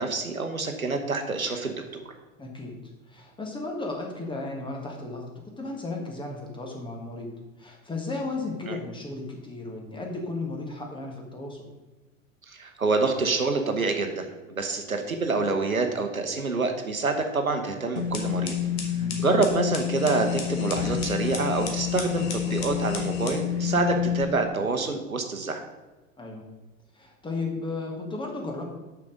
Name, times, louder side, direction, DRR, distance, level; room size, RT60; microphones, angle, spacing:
voice 1, 0.0-2.0 8.7-8.8 12.5-18.5 19.2-25.6, right 3 dB, 90° right, 5 dB, 1.0 m, -27 dB
voice 2, 2.4-2.8 3.0-5.3 5.6-7.3 7.6-11.7 18.9-19.2 26.2-26.5 26.9-28.7, left 3 dB, 10° left, 0 dB, 1.6 m, -34 dB
sound 1, 18.0-24.2, left 9 dB, 45° left, 1.5 m, -28 dB
6.2 x 5.9 x 5.1 m, 1.1 s
figure-of-eight pair, 90°, 41 cm